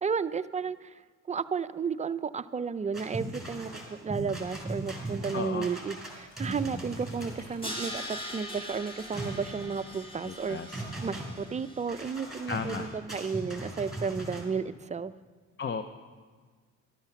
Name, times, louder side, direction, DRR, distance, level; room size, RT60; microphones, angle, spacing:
voice 1, 0.0-1.0 1.3-15.1, right 5 dB, 25° right, 13 dB, 0.4 m, -33 dB
sound 1, 2.9-14.4, right 1 dB, ahead, 4.3 m, -39 dB
voice 2, 5.3-5.7 10.3-10.8 12.5-12.9 15.6-15.8, left 5 dB, 40° left, 9 dB, 0.6 m, -34 dB
sound 2, 6.0-10.7, left 2 dB, 70° left, 4.2 m, -58 dB
Crash cymbal, 7.6-12.7, equal, 20° left, 2.6 m, -42 dB
12.5 x 12.0 x 5.9 m, 1.5 s
cardioid pair, 90°, 30 cm